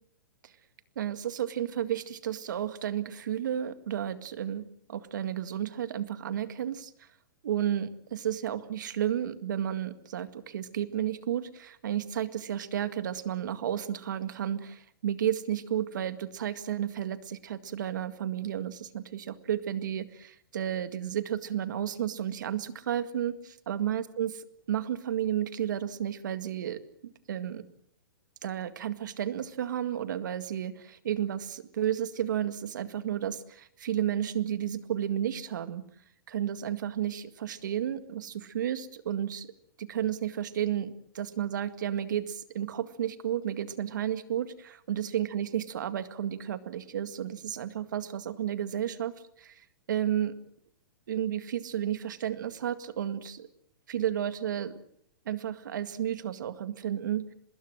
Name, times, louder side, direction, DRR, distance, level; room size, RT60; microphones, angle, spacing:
voice 1, 1.0-6.9 7.4-24.3 24.7-26.8 27.3-27.6 28.4-35.8 36.3-39.5 39.8-49.1 49.4-49.6 49.9-50.3 51.1-53.5 53.9-54.8 55.3-57.3, right 10 dB, 55° right, 11 dB, 2.0 m, -32 dB
24.0 x 21.0 x 7.7 m, 0.69 s
hypercardioid pair, 175°, 12 cm